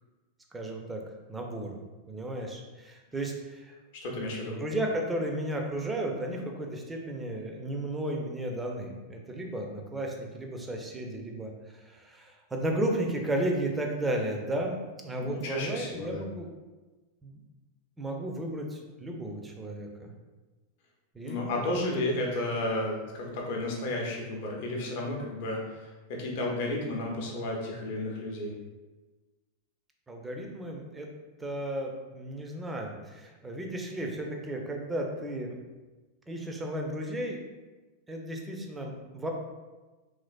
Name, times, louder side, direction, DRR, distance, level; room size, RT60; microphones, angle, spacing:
voice 1, 0.5-1.0 1.3-1.8 2.1-3.8 4.6-14.8 15.0-16.5 17.2-17.4 18.0-20.1 21.1-21.8 22.1-22.2 30.1-31.1 31.4-35.6 36.3-37.4 38.1-39.3, right 1 dB, 10° right, 1 dB, 0.4 m, -34 dB
voice 2, 3.9-4.6 15.2-16.2 21.2-28.5, left 1 dB, 50° left, -1 dB, 0.6 m, -32 dB
3.0 x 2.5 x 2.3 m, 1.2 s
figure-of-eight pair, 90°, 0 cm